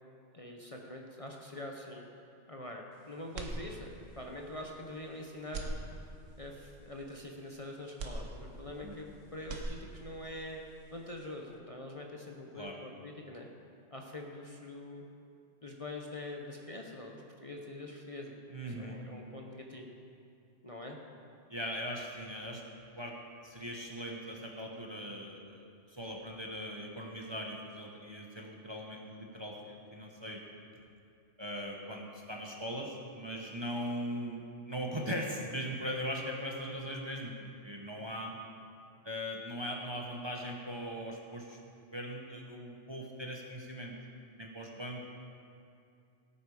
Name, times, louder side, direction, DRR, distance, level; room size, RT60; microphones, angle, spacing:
voice 1, 0.3-2.1 2.5-3.9 4.2-5.8 6.4-10.6 10.9-13.5 13.9-15.0 15.6-18.3 18.7-19.9 20.6-21.0 36.6-36.7, left 1 dB, 30° left, 0 dB, 0.9 m, -44 dB
sound 1, 3.3-4.2 4.7-4.8 5.4-6.5 8.0-9.1 9.3-10.3, right 2 dB, 80° right, 1.4 m, -41 dB
voice 2, 18.5-19.0 21.5-22.6 23.0-23.1 23.4-30.4 31.4-38.3 39.0-41.6 41.9-43.9 44.4-45.1, equal, 25° right, -1 dB, 1.0 m, -40 dB
16.5 x 8.6 x 4.9 m, 2.5 s
omnidirectional pair, 1.3 m